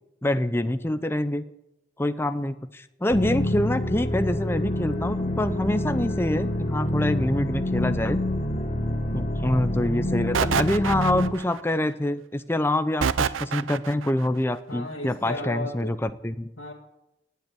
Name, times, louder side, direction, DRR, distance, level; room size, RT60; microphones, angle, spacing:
voice 1, 0.2-1.4 2.0-8.2 9.1-16.5, left 1 dB, 10° left, 11 dB, 0.6 m, -26 dB
sound 1, 3.1-11.3, left 1 dB, 35° left, 1.5 m, -27 dB
sound 2, 10.3-11.6 13.0-14.1, right 6 dB, 90° right, 0.5 m, -26 dB
voice 2, 14.7-15.9 16.6-16.7, left 2 dB, 90° left, -1 dB, 2.0 m, -34 dB
18.5 x 8.1 x 8.5 m, 0.89 s
head